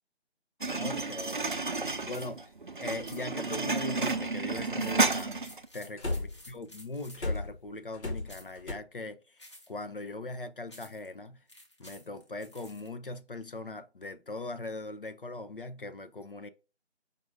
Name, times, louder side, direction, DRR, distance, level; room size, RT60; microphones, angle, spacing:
sound 1, 0.6-5.7, right 3 dB, 50° right, 0.5 m, -31 dB
voice 1, 0.7-1.6 2.0-2.4 2.8-5.4 5.7-11.4 11.8-16.5, left 2 dB, 55° left, 0.4 m, -40 dB
sound 2, 1.2-1.5 2.1-2.3 3.0-3.5 4.0-4.3 4.7-7.4 8.3-8.6 9.4-9.8 10.7-11.1 11.5-12.9, left 1 dB, 25° left, 0.8 m, -52 dB
sound 3, 3.0-3.1 6.0-6.5 7.1-8.7, left 2 dB, 75° left, 1.4 m, -34 dB
5.1 x 2.5 x 3.5 m
figure-of-eight pair, 160°, 34 cm